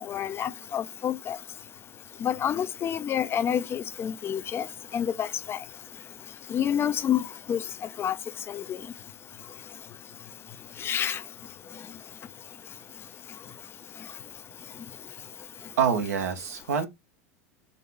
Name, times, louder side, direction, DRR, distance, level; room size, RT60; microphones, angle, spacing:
voice 1, 0.1-1.4 2.2-4.7 4.9-5.6 6.5-7.2 7.5-7.6 8.0-8.1 8.5-8.8 10.8-11.2, left 9 dB, 30° left, 0.5 m, -28 dB
voice 2, 15.8-16.9, right 7 dB, 80° right, 1.0 m, -26 dB
4.0 x 2.8 x 3.4 m
hypercardioid pair, 95°, 8 cm